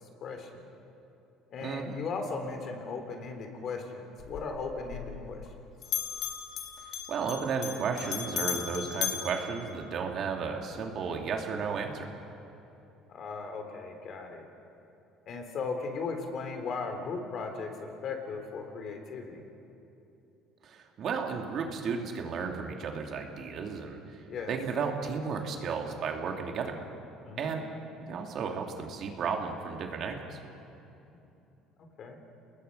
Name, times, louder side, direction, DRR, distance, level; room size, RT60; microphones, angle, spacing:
voice 1, 0.2-0.6 1.5-5.5 13.1-14.5 15.3-17.7 18.0-19.4 24.3-24.5 27.2-27.5 31.1-31.2 32.0-32.2, left 4 dB, 45° left, 4 dB, 3.7 m, -37 dB
voice 2, 1.6-1.9 7.1-12.1 20.6-26.8 27.4-27.6 28.1-30.4, right 5 dB, 50° right, 2 dB, 2.7 m, -33 dB
Bell, 4.2-5.6 5.8-10.3, left 9 dB, 70° left, 2.5 m, -37 dB
29.5 x 20.5 x 5.6 m, 2.8 s
cardioid pair, 125°, 0 cm